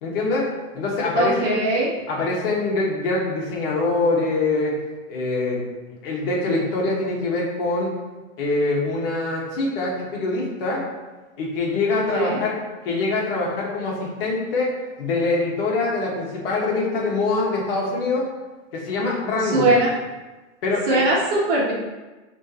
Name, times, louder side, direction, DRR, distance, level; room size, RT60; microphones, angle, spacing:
voice 1, 0.0-1.6 2.1-4.8 5.1-5.6 6.0-7.9 8.4-10.9 11.4-18.3 18.7-19.7 20.6-21.0, left 3 dB, 50° left, -3 dB, 2.0 m, -24 dB
voice 2, 1.1-1.9 12.1-12.4 19.4-19.9 20.9-21.7, right 2 dB, 45° right, -4 dB, 1.7 m, -20 dB
10.5 x 3.9 x 3.2 m, 1.2 s
supercardioid pair, 165°, 37 cm